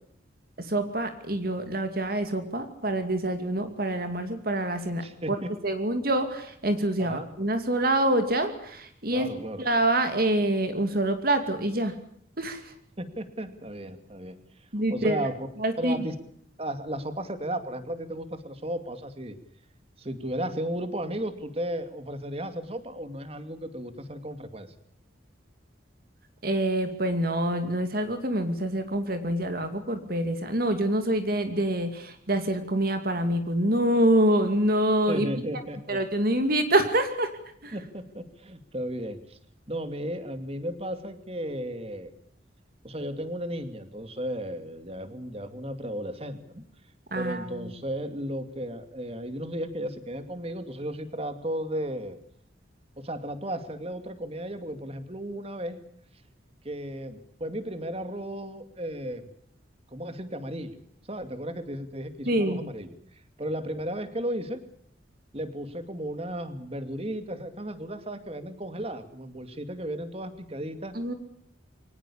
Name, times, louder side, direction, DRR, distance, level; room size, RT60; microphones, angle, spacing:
voice 1, 0.6-5.4 5.6-9.3 9.6-11.9 12.4-12.7 14.7-15.2 15.6-16.0 26.4-35.3 35.9-37.3 37.6-37.7 47.1-47.7 62.3-62.6 70.9-71.1, right 1 dB, 50° right, 8 dB, 2.5 m, -26 dB
voice 2, 5.0-5.5 7.0-7.3 9.1-9.6 13.0-14.4 14.9-15.4 15.8-16.2 16.6-19.4 20.0-24.7 35.1-36.0 37.7-39.4 39.7-42.1 42.8-46.6 47.1-52.2 53.0-55.8 56.6-59.3 59.9-60.8 61.1-64.6 65.3-71.0, right 1 dB, 30° right, 10 dB, 2.5 m, -34 dB
24.5 x 18.5 x 8.7 m, 0.66 s
head